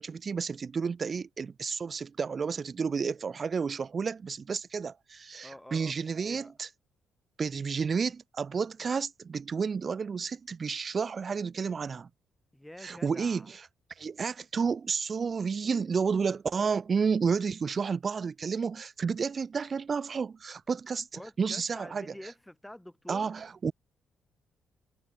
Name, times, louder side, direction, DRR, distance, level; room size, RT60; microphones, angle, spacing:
voice 1, 0.0-6.7 7.4-12.1 12.8-13.6 14.0-22.1 23.1-23.7, right 5 dB, 40° right, 3.0 m, -31 dB
voice 2, 5.4-6.5 12.5-13.5 21.1-23.3, left 1 dB, 5° left, 5.8 m, -47 dB
cardioid pair, 90°, 0 cm